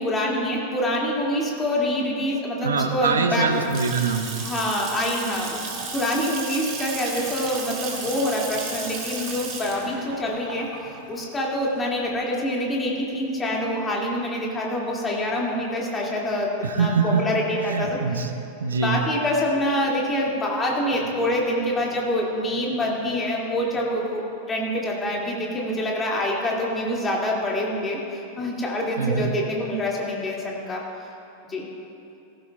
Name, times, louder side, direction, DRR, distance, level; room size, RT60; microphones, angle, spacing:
voice 1, 0.0-3.6 4.4-5.6 5.9-10.7 11.1-18.0 18.8-30.8 31.4-31.7, left 1 dB, 15° left, -3 dB, 2.4 m, -26 dB
voice 2, 2.6-4.4 16.6-17.3 17.6-19.0 29.0-29.3, right 5 dB, 70° right, 7 dB, 0.9 m, -24 dB
Water tap faucet / Sink (filling or washing) / Splash splatter, 3.5-12.1, right 4 dB, 40° right, 2.1 m, -34 dB
17.0 x 14.5 x 2.4 m, 2.7 s
figure-of-eight pair, 90°, 0 cm